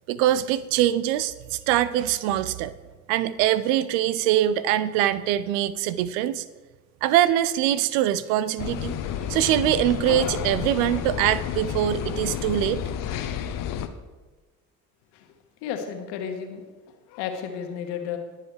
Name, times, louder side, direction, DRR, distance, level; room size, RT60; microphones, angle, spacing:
voice 1, 0.1-2.7 3.1-6.4 7.0-9.0 9.3-12.8, right 12 dB, 60° right, 16 dB, 0.6 m, -23 dB
sound 1, 8.6-13.9, left 9 dB, 45° left, 0.9 m, -30 dB
voice 2, 15.6-18.2, left 8 dB, 60° left, 5 dB, 1.6 m, -33 dB
21.0 x 7.3 x 3.3 m, 1.3 s
figure-of-eight pair, 50°, 46 cm